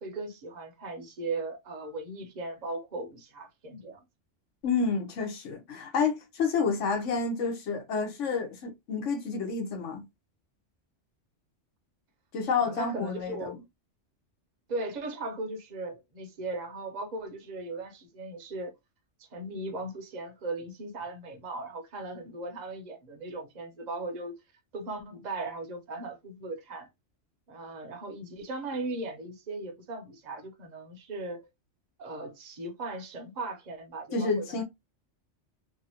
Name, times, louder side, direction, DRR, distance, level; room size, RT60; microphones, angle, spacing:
voice 1, 0.0-4.0 12.6-13.6 14.7-18.7 19.2-24.3 24.7-26.9 27.5-31.5 32.0-34.6, right 2 dB, 45° right, 0.7 m, -38 dB
voice 2, 4.6-10.1 12.3-13.5 34.1-34.6, left 5 dB, 80° left, 1.1 m, -29 dB
2.8 x 2.4 x 2.7 m
omnidirectional pair, 1.3 m